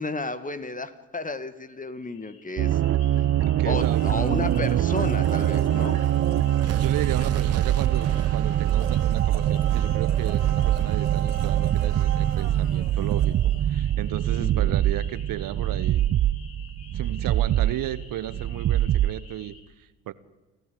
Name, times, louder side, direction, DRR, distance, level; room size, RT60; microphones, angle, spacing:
voice 1, 0.0-2.8 3.6-6.0 14.4-14.7, left 3 dB, 20° left, 12 dB, 2.1 m, -32 dB
sound 1, 2.0-19.6, left 5 dB, 65° left, 4.9 m, -51 dB
sound 2, 2.6-19.2, right 12 dB, 40° right, 0.7 m, -23 dB
voice 2, 3.4-4.3 6.8-13.4 13.7-16.1 16.9-20.1, right 13 dB, 55° right, 16 dB, 1.2 m, -34 dB
Domestic sounds home sounds, 3.8-13.7 14.0-14.1, right 10 dB, 90° right, 2.1 m, -37 dB
28.5 x 14.5 x 8.7 m, 1.2 s
hypercardioid pair, 55°, 40 cm